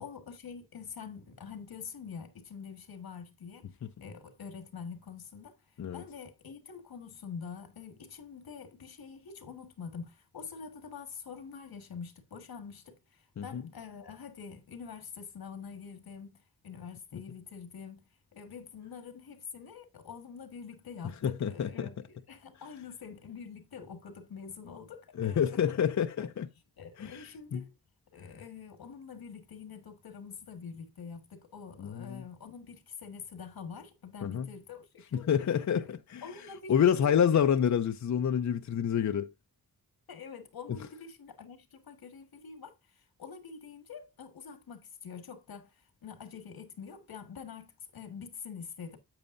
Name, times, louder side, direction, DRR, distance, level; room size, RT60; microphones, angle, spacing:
voice 1, 0.0-3.7 4.0-25.8 26.2-26.3 26.8-27.7 28.1-35.3 35.8-35.9 36.2-37.5 40.1-49.0, left 6 dB, 85° left, 1.7 m, -46 dB
voice 2, 21.2-21.9 25.2-26.5 27.0-27.6 31.8-32.2 34.2-34.5 35.1-36.2 36.7-39.3, left 8 dB, 55° left, 0.6 m, -28 dB
8.8 x 8.1 x 2.6 m
wide cardioid pair, 120°, 36 cm